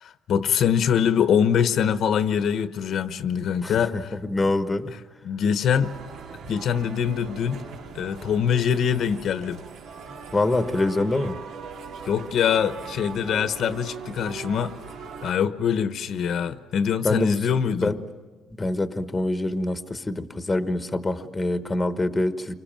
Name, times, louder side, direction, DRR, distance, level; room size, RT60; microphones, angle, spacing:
voice 1, 0.0-4.0 5.2-5.9 6.5-7.6 7.9-9.6 12.1-14.8 15.2-17.9, left 8 dB, 55° left, 1.1 m, -23 dB
voice 2, 3.6-4.9 10.3-11.4 17.0-17.5 17.8-18.0 18.6-22.5, left 2 dB, 15° left, 1.2 m, -25 dB
sound 1, 5.8-15.3, right 5 dB, 75° right, 2.7 m, -40 dB
29.0 x 25.5 x 7.5 m
cardioid pair, 160°, 0 cm